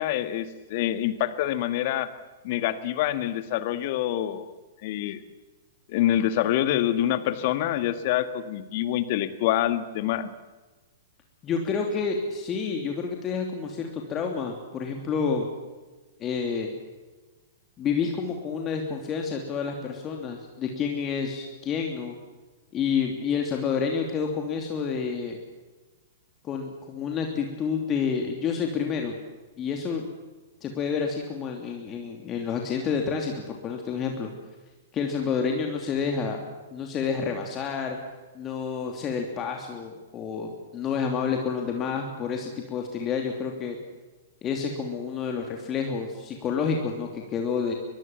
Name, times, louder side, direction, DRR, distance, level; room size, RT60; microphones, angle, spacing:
voice 1, 0.0-2.1 2.4-4.5 4.8-5.2 5.9-10.3, left 12 dB, 45° left, 12 dB, 1.8 m, -26 dB
voice 2, 11.4-15.5 16.2-16.7 17.8-22.2 22.7-25.4 26.4-29.1 29.6-30.1 30.6-34.3 34.9-36.4 36.7-38.0 38.3-43.8 44.4-47.7, left 6 dB, 25° left, 2 dB, 3.0 m, -29 dB
23.0 x 23.0 x 7.4 m, 1.2 s
figure-of-eight pair, 105°, 0 cm